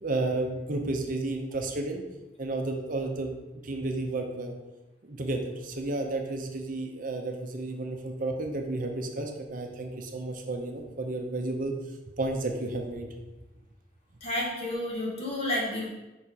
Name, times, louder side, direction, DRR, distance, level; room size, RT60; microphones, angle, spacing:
voice 1, 0.0-2.0 2.4-3.3 3.6-4.5 5.0-11.7 12.2-13.1, right 2 dB, 50° right, 3 dB, 0.7 m, -32 dB
voice 2, 14.2-15.9, left 1 dB, 35° left, -4 dB, 1.6 m, -30 dB
5.5 x 4.3 x 4.7 m, 1.0 s
head